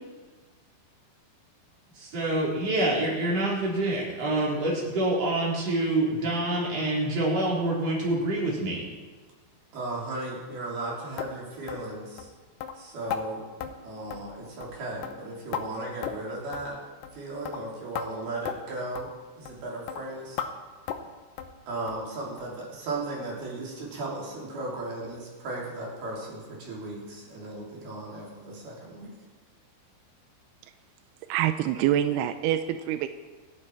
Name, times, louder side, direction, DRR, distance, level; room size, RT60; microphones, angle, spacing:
voice 1, 2.0-8.8, right 1 dB, 35° right, -4 dB, 4.8 m, -26 dB
voice 2, 9.7-12.3 12.8-13.5 13.8-16.8 17.1-20.4 21.7-29.2, right 2 dB, 55° right, -3 dB, 5.1 m, -36 dB
sound 1, 11.2-11.3 11.7-11.9 12.2-12.3 12.6-12.7 13.1-13.2 13.6-13.7 14.1-14.3 14.6-14.8 15.0-15.6 16.0-16.3 16.5-16.7 17.0-17.2 17.5-17.6 18.0-18.1 18.5-18.6 19.0-19.1 19.5-19.6 19.9-20.0 20.4-20.5 20.9-21.1 21.4-21.6 21.9-22.0 22.4-22.5 22.9-23.0 23.4-23.5, left 8 dB, 90° left, 1.9 m, -35 dB
voice 3, 31.3-33.1, right 11 dB, 85° right, 9 dB, 2.3 m, -25 dB
27.0 x 9.8 x 4.6 m, 1.4 s
omnidirectional pair, 5.4 m